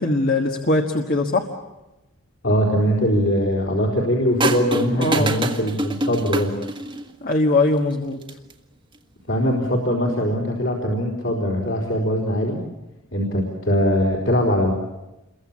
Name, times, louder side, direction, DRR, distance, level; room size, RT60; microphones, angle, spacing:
voice 1, 0.0-1.4 5.0-5.3 7.2-8.2, left 2 dB, 40° left, 3 dB, 1.5 m, -21 dB
voice 2, 2.4-6.6 9.3-12.6 13.1-14.7, equal, 60° left, -3 dB, 4.3 m, -21 dB
sound 1, 4.4-7.1 8.1-8.5, right 2 dB, 25° right, 1.5 m, -25 dB
29.0 x 23.0 x 7.4 m, 0.99 s
head